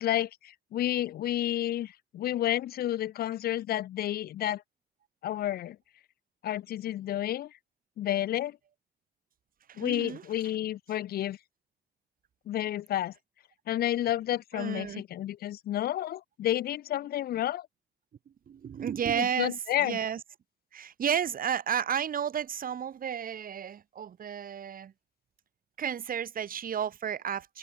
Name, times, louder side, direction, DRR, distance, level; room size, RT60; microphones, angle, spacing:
voice 1, 0.0-4.6 5.2-5.8 6.4-7.5 8.0-8.6 9.8-11.4 12.5-13.1 13.7-17.7 19.2-20.0, left 12 dB, 85° left, 1.2 m, -30 dB
voice 2, 9.7-10.2 14.5-15.0 18.5-19.5 19.8-20.2 20.7-24.9 25.8-27.6, right 8 dB, 70° right, 3.4 m, -32 dB
open air
cardioid pair, 60°, 15 cm